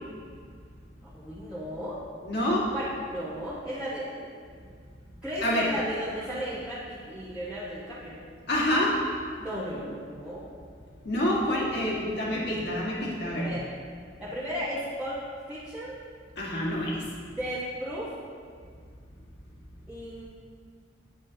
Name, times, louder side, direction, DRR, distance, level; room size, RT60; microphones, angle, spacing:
voice 1, 1.0-2.0 2.7-4.3 5.2-8.2 9.4-10.4 12.2-12.5 13.3-13.7 14.2-16.0 17.4-18.1 19.9-20.2, equal, 5° right, -12 dB, 1.1 m, -35 dB
voice 2, 2.2-2.7 5.4-5.7 8.5-9.0 11.0-13.5 16.4-17.0, left 1 dB, 60° left, -5 dB, 1.7 m, -27 dB
8.5 x 7.1 x 2.8 m, 2.1 s
head